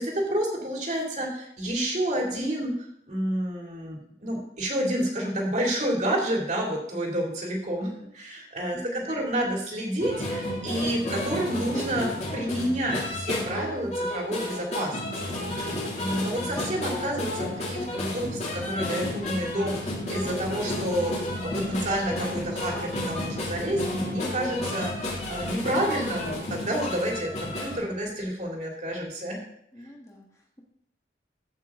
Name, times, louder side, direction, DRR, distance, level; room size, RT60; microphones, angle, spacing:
voice 1, 0.0-2.8 3.1-29.4, right 1 dB, 40° right, -1 dB, 2.5 m, -29 dB
voice 2, 8.7-9.3 29.7-30.6, equal, 20° left, -1 dB, 1.4 m, -45 dB
sound 1, 10.0-27.8, left 1 dB, 40° left, 2.4 m, -32 dB
14.0 x 5.7 x 3.6 m, 0.71 s
head